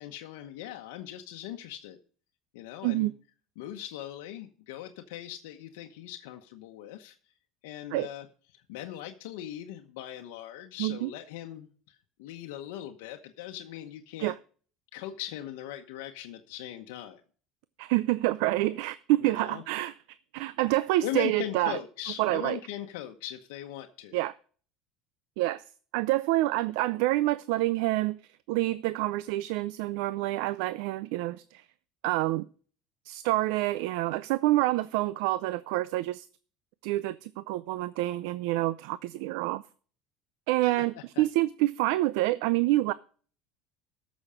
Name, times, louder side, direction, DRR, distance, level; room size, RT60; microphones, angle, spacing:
voice 1, 0.0-2.0 2.5-3.1 3.6-7.1 7.6-8.3 8.5-14.3 14.9-17.2 19.2-19.6 21.0-24.2 40.6-40.9 41.2-41.3, left 12 dB, 90° left, 1.0 m, -40 dB
voice 2, 10.8-11.1 14.2-14.3 17.8-19.9 20.3-21.8 22.2-22.6 24.1-24.3 25.4-25.6 25.9-28.2 28.5-31.6 32.0-32.5 33.1-36.3 36.8-39.6 40.5-42.9, right 17 dB, 75° right, 0.5 m, -27 dB
14.0 x 6.3 x 5.0 m
cardioid pair, 145°, 0 cm